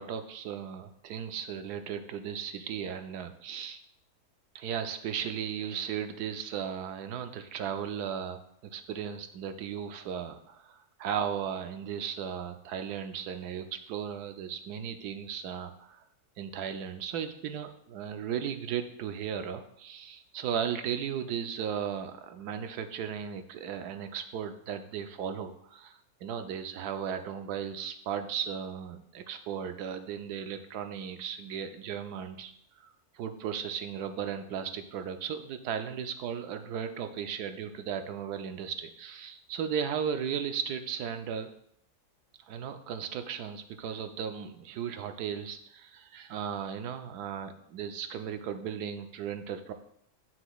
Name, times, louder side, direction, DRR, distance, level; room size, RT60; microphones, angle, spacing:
voice 1, 0.0-3.8 4.5-16.0 16.4-32.5 32.8-32.9 33.1-41.5 42.5-49.7, right 8 dB, 90° right, 8 dB, 1.2 m, -36 dB
9.6 x 6.0 x 2.3 m, 0.72 s
omnidirectional pair, 1.6 m